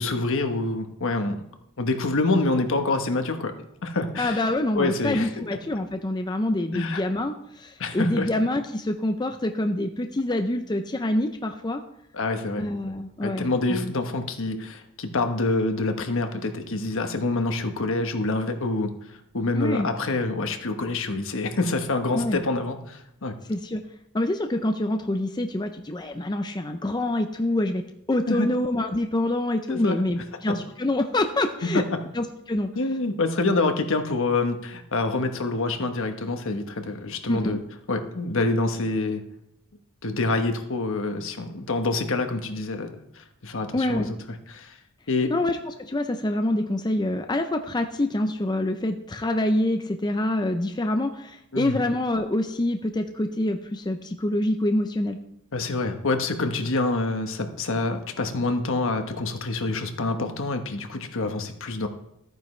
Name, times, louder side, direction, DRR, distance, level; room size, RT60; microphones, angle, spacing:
voice 1, 0.0-1.4 1.8-3.5 3.8-4.4 4.7-5.3 6.7-7.0 7.8-8.3 12.1-12.7 13.2-23.3 28.3-28.5 29.7-30.0 31.7-31.8 32.7-37.6 37.9-39.2 40.0-44.1 44.5-44.8 45.1-45.3 51.5-51.8 55.5-61.9, left 2 dB, 65° left, 6 dB, 1.2 m, -26 dB
voice 2, 4.2-11.8 12.6-13.9 19.5-19.9 22.1-22.4 23.5-23.8 24.1-27.8 28.1-31.8 32.1-32.7 37.3-37.6 43.7-44.1 45.3-55.2, left 1 dB, 20° left, 5 dB, 0.5 m, -26 dB
13.5 x 9.3 x 3.2 m, 0.81 s
head